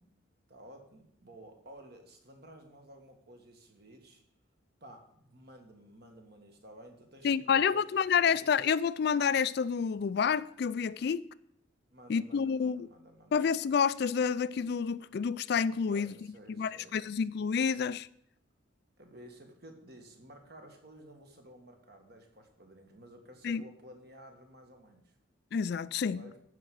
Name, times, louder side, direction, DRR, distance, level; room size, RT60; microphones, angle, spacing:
voice 1, 0.5-4.2 4.8-8.6 11.9-13.4 15.9-17.0 19.0-25.2 26.2-26.4, right 1 dB, 55° right, 1.9 m, -53 dB
voice 2, 7.2-11.3 12.1-12.9 13.3-16.1 16.6-18.1 23.4-23.6 25.5-26.2, left 6 dB, 55° left, 0.3 m, -29 dB
11.5 x 5.0 x 7.6 m
head